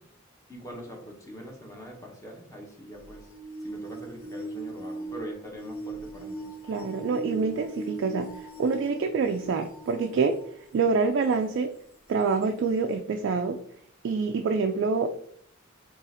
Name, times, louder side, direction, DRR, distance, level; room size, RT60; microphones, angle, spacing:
voice 1, 0.5-3.3 3.6-6.5, equal, 15° left, 0 dB, 0.9 m, -43 dB
sound 1, 2.9-10.6 11.3-11.4 12.4-12.5, right 2 dB, 80° left, 0.8 m, -39 dB
voice 2, 6.7-10.4 10.7-11.7 12.1-13.6 14.0-15.1, right 4 dB, 60° right, 5 dB, 0.3 m, -26 dB
3.7 x 2.5 x 4.0 m, 0.65 s
head